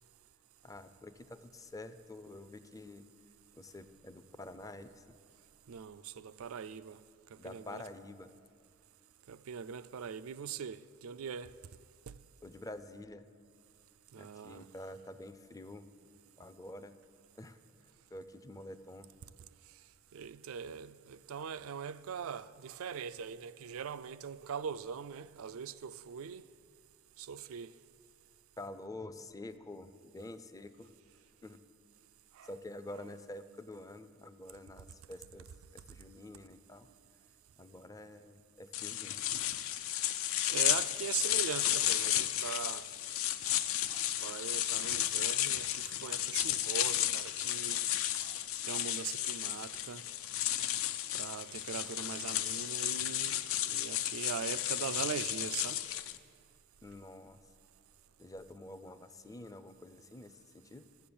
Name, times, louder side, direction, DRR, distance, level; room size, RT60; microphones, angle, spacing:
voice 1, 0.6-3.0 3.5-5.0 7.4-8.3 12.4-13.3 14.2-15.9 16.4-16.9 17.4-17.6 18.1-19.1 28.6-30.9 31.4-31.6 32.4-35.5 35.7-36.9 37.6-39.2 56.8-57.4 58.2-60.9, left 1 dB, 15° left, 0.5 m, -48 dB
voice 2, 5.7-7.0 7.3-7.8 9.3-11.5 12.1-12.2 14.1-14.7 20.1-26.4 27.2-27.7 32.4-32.5 40.5-42.9 43.5-43.6 43.9-47.8 48.1-48.4 48.6-50.1 51.1-55.8, right 7 dB, 70° right, 0.4 m, -41 dB
sound 1, 38.7-56.2, left 12 dB, 65° left, 0.5 m, -33 dB
14.0 x 7.6 x 7.0 m
head